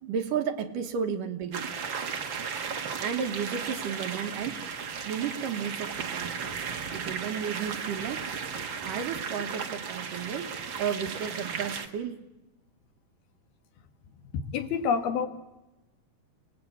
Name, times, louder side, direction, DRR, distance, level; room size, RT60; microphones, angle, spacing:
voice 1, 0.0-1.7 3.0-4.6 5.0-6.5 6.9-8.3 8.8-10.5 10.8-12.3, right 7 dB, 65° right, 7 dB, 2.6 m, -33 dB
sound 1, 1.5-11.9, right 6 dB, 50° right, 1.5 m, -35 dB
voice 2, 14.3-15.3, left 6 dB, 75° left, 7 dB, 3.7 m, -27 dB
29.0 x 19.0 x 8.6 m, 0.99 s
omnidirectional pair, 4.4 m